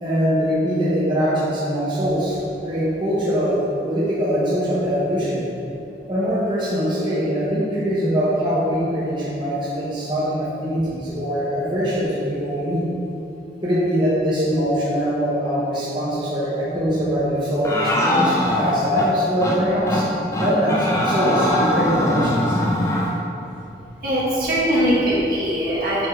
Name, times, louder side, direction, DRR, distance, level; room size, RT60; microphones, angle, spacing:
voice 1, 0.0-2.4 2.6-5.5 6.1-12.8 13.6-20.0 20.4-22.6, equal, 25° right, -10 dB, 1.5 m, -22 dB
sound 1, 17.6-19.1 19.4-19.6 19.9-20.1 20.3-23.1, left 1 dB, 15° left, 0.7 m, -21 dB
voice 2, 24.0-26.1, equal, 50° right, -8 dB, 1.6 m, -21 dB
7.6 x 3.7 x 4.9 m, 2.7 s
head